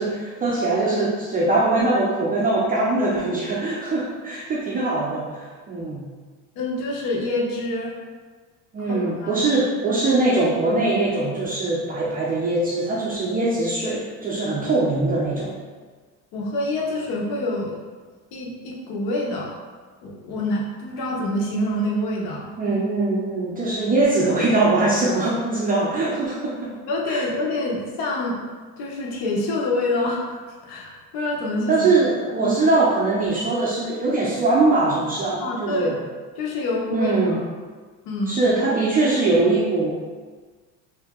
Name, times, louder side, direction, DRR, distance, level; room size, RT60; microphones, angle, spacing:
voice 1, 0.0-6.0 8.7-15.5 22.6-26.8 27.1-27.2 31.7-36.0 36.9-37.4 38.3-39.9, right 2 dB, 25° right, -5 dB, 0.5 m, -22 dB
voice 2, 6.6-7.9 8.9-9.4 16.3-17.8 18.3-19.6 20.0-22.5 26.9-28.4 28.8-30.4 30.6-31.9 32.4-32.5 35.4-36.0 36.4-37.4 38.1-38.4, left 1 dB, 75° left, -2 dB, 0.9 m, -26 dB
2.8 x 2.7 x 3.5 m, 1.4 s
cardioid pair, 130°, 37 cm